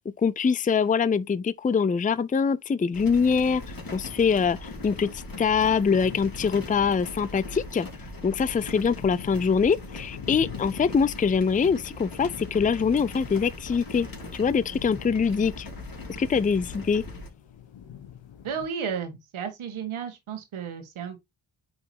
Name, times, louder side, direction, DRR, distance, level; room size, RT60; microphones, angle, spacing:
voice 1, 0.2-3.6 3.9-7.9 8.2-14.1 14.3-15.7 16.2-17.0, left 6 dB, 20° left, 0.5 m, -24 dB
sound 1, 2.9-17.3, left 2 dB, 45° left, 2.8 m, -40 dB
sound 2, 4.8-18.7, left 9 dB, 70° left, 1.2 m, -46 dB
voice 2, 18.4-21.2, right 7 dB, 80° right, 1.8 m, -33 dB
8.9 x 3.9 x 2.9 m
supercardioid pair, 40°, 48 cm